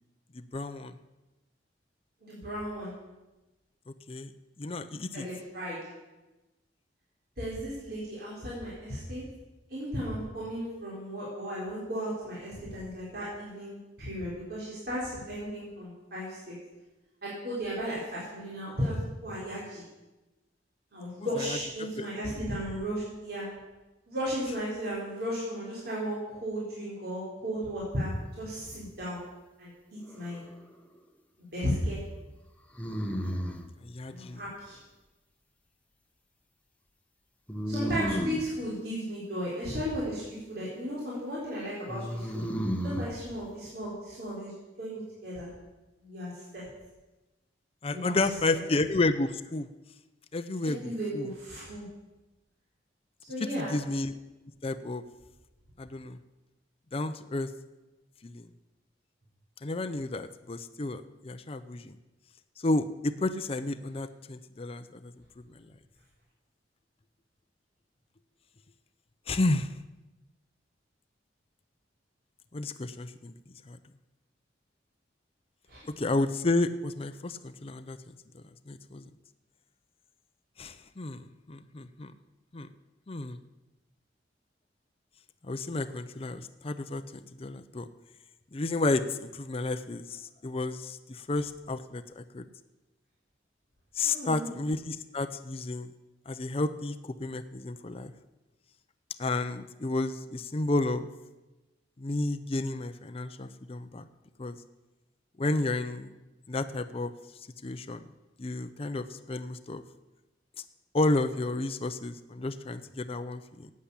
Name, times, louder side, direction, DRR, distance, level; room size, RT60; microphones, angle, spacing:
voice 1, 0.3-0.9 4.1-4.3 4.6-5.2 21.2-21.6 22.0-22.1 33.8-34.4 38.1-38.2 47.8-49.7 50.3-51.3 53.6-54.1 54.6-55.0 55.8-56.2 56.9-57.5 58.2-58.5 59.6-61.9 62.6-65.1 69.3-69.7 72.5-73.3 73.7-73.8 75.8-78.0 78.3-79.0 80.6-82.1 82.5-82.7 83.1-83.4 85.5-87.9 88.5-92.4 94.0-95.9 96.3-98.1 99.2-101.1 102.0-104.0 104.4-104.6 105.4-106.1 106.5-107.1 107.6-108.0 108.4-109.8 110.9-113.7, left 2 dB, 35° left, 9 dB, 0.6 m, -31 dB
voice 2, 2.2-2.9 5.1-5.9 7.4-9.2 9.7-16.5 17.2-19.0 19.2-19.8 20.9-23.5 24.1-29.2 29.6-29.7 30.1-30.4 31.5-32.0 34.1-34.8 37.7-42.4 42.8-44.5 44.8-45.5 46.0-46.6 47.9-48.2 48.5-48.6 50.6-51.8 53.3-53.7 75.7-75.8 94.0-94.5, equal, 60° right, -7 dB, 4.2 m, -35 dB
sound 1, 30.0-30.7 32.7-33.7 37.5-38.5 41.9-43.1, equal, 10° left, 1.0 m, -33 dB
11.5 x 8.5 x 8.3 m, 1.1 s
head